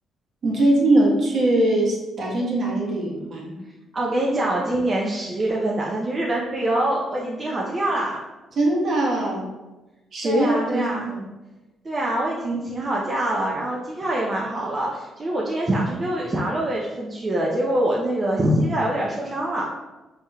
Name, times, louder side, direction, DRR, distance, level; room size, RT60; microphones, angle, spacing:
voice 1, 0.4-3.6 8.5-9.5 10.1-11.3 12.4-12.6, right 1 dB, 55° right, -3 dB, 1.1 m, -21 dB
voice 2, 3.9-8.2 10.2-11.1 11.8-19.7, right 1 dB, 30° right, -4 dB, 0.6 m, -24 dB
4.2 x 3.4 x 2.3 m, 1.1 s
cardioid pair, 90°, 0 cm